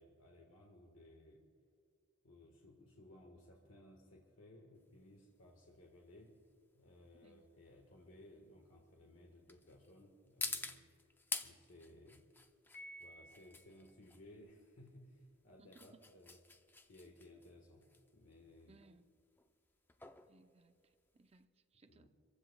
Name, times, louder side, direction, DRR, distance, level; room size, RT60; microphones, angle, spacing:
voice 1, 0.0-1.5 2.2-6.4 6.7-10.9 11.4-12.3 13.0-16.4 16.8-18.8 21.9-22.1, left 1 dB, 85° left, 0 dB, 1.6 m, -60 dB
sound 1, 4.8-21.4, left 3 dB, 10° left, 0.5 m, -49 dB
voice 2, 7.1-7.6 15.6-16.0 18.7-19.1 20.3-22.1, right 3 dB, 30° right, 9 dB, 0.6 m, -66 dB
Piano, 12.7-13.9, equal, 60° left, 2.3 m, -54 dB
28.0 x 15.0 x 2.3 m, 2.2 s
head